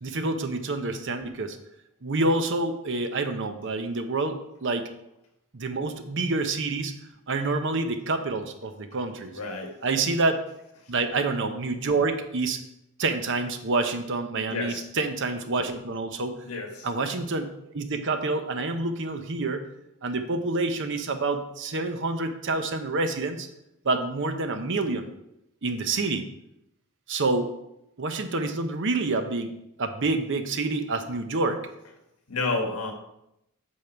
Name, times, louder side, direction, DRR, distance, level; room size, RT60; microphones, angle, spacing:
voice 1, 0.0-1.6 2.0-4.9 5.5-6.9 7.3-9.3 9.8-10.4 10.9-12.6 13.0-16.3 16.8-19.7 20.0-23.5 23.8-25.1 25.6-26.3 27.1-27.5 28.0-29.5 29.8-31.6, right 3 dB, 55° right, 8 dB, 0.8 m, -27 dB
voice 2, 9.3-9.8 10.8-10.9 14.5-14.9 16.4-16.9 32.3-32.9, left 3 dB, 75° left, 3 dB, 1.6 m, -30 dB
8.6 x 5.5 x 4.6 m, 0.83 s
head